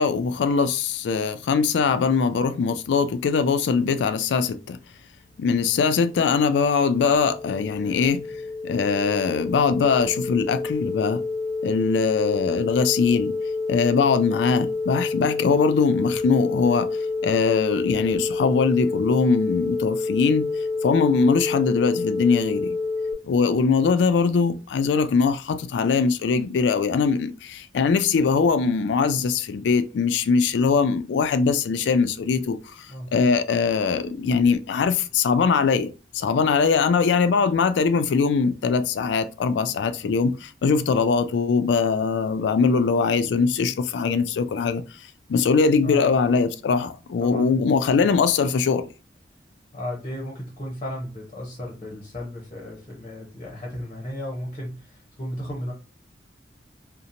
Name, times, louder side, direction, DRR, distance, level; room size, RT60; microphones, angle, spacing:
voice 1, 0.0-4.8 5.4-8.2 8.6-11.2 11.6-13.3 13.7-16.9 17.2-20.5 20.8-22.8 23.3-32.6 33.1-44.8 45.3-48.8, left 5 dB, 80° left, 0.3 m, -21 dB
sound 1, 6.2-23.1, left 3 dB, 20° right, 0.3 m, -28 dB
voice 2, 45.8-46.4 47.2-47.7 48.0-48.1 49.7-55.7, left 1 dB, 35° left, 0.7 m, -35 dB
2.8 x 2.1 x 2.5 m
head